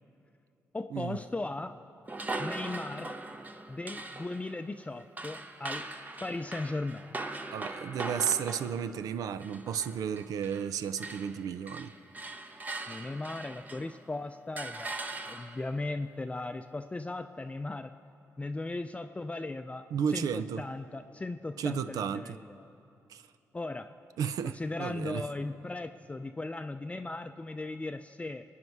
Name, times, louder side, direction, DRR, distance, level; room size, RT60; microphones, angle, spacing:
voice 1, 0.7-1.8 2.4-3.2 3.7-5.9 6.2-7.1 12.9-17.9 18.4-19.8 20.1-22.7 23.5-23.9 24.4-28.4, left 2 dB, 20° left, 8 dB, 0.5 m, -37 dB
sound 1, 2.1-10.7 11.0-14.0 14.6-15.8, right 2 dB, 25° right, 0.9 m, -41 dB
voice 2, 7.5-11.9 19.9-20.6 21.6-22.4 23.1-23.2 24.2-25.2, right 8 dB, 80° right, 13 dB, 0.4 m, -33 dB
23.0 x 9.6 x 4.7 m, 2.6 s
supercardioid pair, 60°, 6 cm